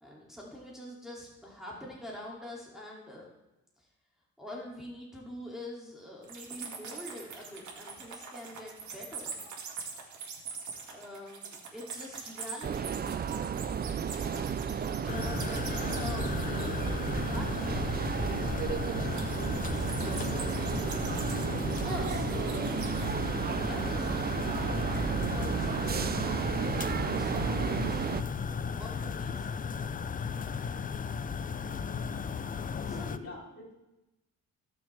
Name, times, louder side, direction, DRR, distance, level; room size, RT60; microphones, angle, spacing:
voice 1, 0.0-3.3 3.8-3.9 4.4-9.4 10.9-13.0 14.1-16.9 17.2-18.2 19.7-20.9 21.4-23.0 23.4-26.5 27.0-28.0 28.8-29.5 32.4-33.1, left 1 dB, ahead, -5 dB, 2.6 m, -45 dB
sound 1, 6.2-17.6 19.1-23.1, right 5 dB, 70° right, 2.2 m, -43 dB
sound 2, 12.6-28.2, right 7 dB, 30° right, 0.5 m, -33 dB
sound 3, 15.1-33.2, left 6 dB, 30° left, 0.5 m, -35 dB
voice 2, 32.9-33.7, left 3 dB, 50° left, -3 dB, 3.9 m, -44 dB
17.0 x 6.3 x 3.4 m, 0.96 s
cardioid pair, 90°, 30 cm